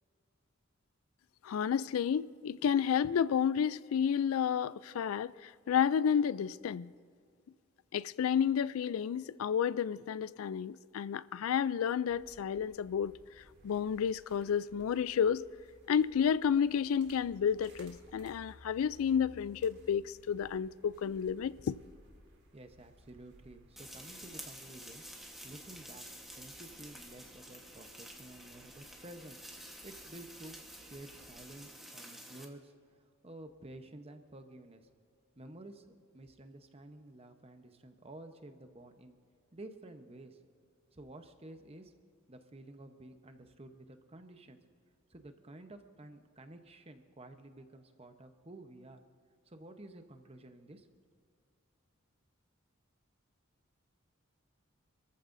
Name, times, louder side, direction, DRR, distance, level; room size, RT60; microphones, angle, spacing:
voice 1, 1.4-6.9 7.9-13.1 13.6-15.5 15.9-21.8, left 7 dB, 85° left, 0.3 m, -31 dB
sound 1, 12.1-31.7, equal, 55° right, 2.2 m, -61 dB
voice 2, 22.5-26.1 26.3-29.4 29.8-34.9 35.4-39.2 39.5-40.4 40.9-41.9 42.3-44.6 45.1-49.0 49.5-50.9, right 1 dB, 30° right, 0.9 m, -52 dB
sound 2, 23.8-32.5, equal, ahead, 1.2 m, -50 dB
26.5 x 14.0 x 2.6 m
head